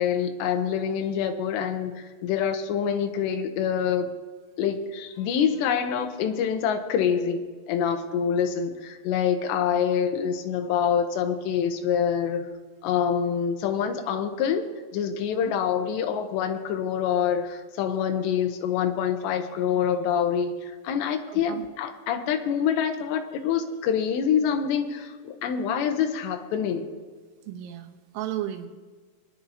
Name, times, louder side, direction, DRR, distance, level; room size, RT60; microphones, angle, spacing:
voice 1, 0.0-4.1 4.6-7.4 7.7-12.5 12.8-14.7 14.9-26.9, left 8 dB, 75° left, 6 dB, 2.9 m, -26 dB
voice 2, 21.3-21.7 27.5-28.7, right 12 dB, 90° right, 4 dB, 3.6 m, -34 dB
23.5 x 10.5 x 2.8 m, 1.5 s
omnidirectional pair, 5.6 m